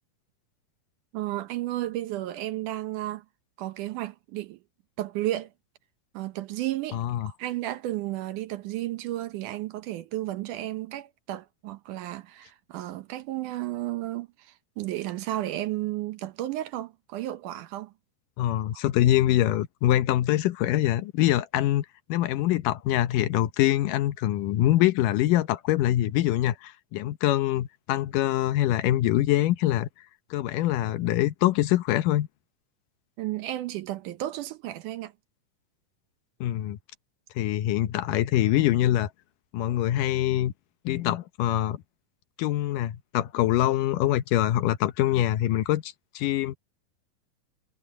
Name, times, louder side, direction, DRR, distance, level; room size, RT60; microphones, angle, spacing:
voice 1, 1.1-3.2 3.6-4.6 5.0-5.5 6.1-17.9 18.7-18.8 33.2-35.1, right 15 dB, 75° right, 2.1 m, -33 dB
voice 2, 6.9-7.3 18.4-29.9 30.3-32.3 36.4-36.8 37.4-39.1 39.5-40.5 40.9-41.8 42.4-46.5, left 13 dB, 75° left, 2.3 m, -24 dB
omnidirectional pair, 4.0 m